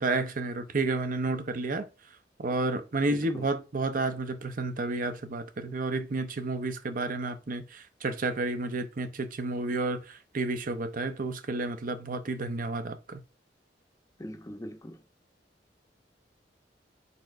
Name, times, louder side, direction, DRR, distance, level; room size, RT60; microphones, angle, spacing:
voice 1, 0.0-1.9 2.4-13.2, right 3 dB, 50° right, 0.6 m, -31 dB
voice 2, 3.1-3.4 14.2-15.0, equal, 20° left, 0.7 m, -41 dB
4.5 x 4.2 x 2.5 m
head